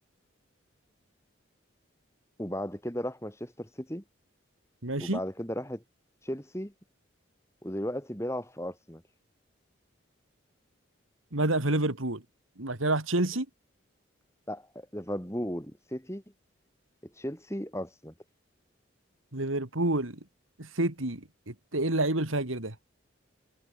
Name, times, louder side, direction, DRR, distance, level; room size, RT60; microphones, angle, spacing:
voice 1, 2.4-4.0 5.0-5.8 6.2-6.7 7.6-9.0 14.5-16.2 17.2-18.1, equal, 15° left, 5.6 m, -35 dB
voice 2, 4.8-5.2 11.3-12.2 12.6-13.5 19.3-20.2 20.6-22.7, right 2 dB, 85° right, 3.1 m, -28 dB
head